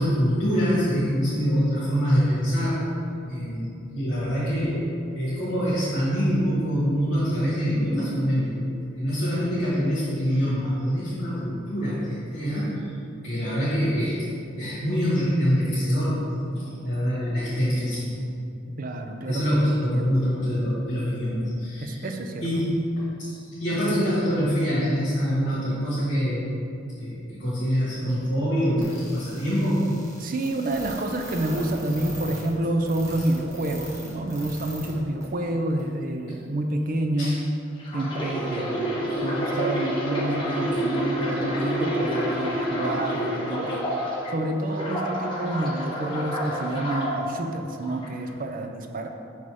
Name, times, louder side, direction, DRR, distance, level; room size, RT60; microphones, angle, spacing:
voice 1, 0.0-2.8 3.3-4.8 5.1-8.7 9.0-12.7 13.2-14.1 14.6-16.2 16.5-18.1 19.3-22.1 22.4-26.5 27.0-29.8 36.3-36.4 37.2-37.4, equal, 65° left, -10 dB, 1.5 m, -25 dB
voice 2, 18.8-19.4 19.9-20.1 21.8-22.4 30.2-37.4 37.9-43.9 44.3-49.1, right 1 dB, 45° right, 5 dB, 0.5 m, -28 dB
sound 1, 28.8-34.9 35.2-35.3 35.8-35.9, right 1 dB, 15° right, 1.4 m, -40 dB
sound 2, 37.8-44.3 44.7-47.2 47.8-48.1, equal, 25° left, 1.1 m, -28 dB
6.1 x 4.1 x 4.7 m, 2.5 s
head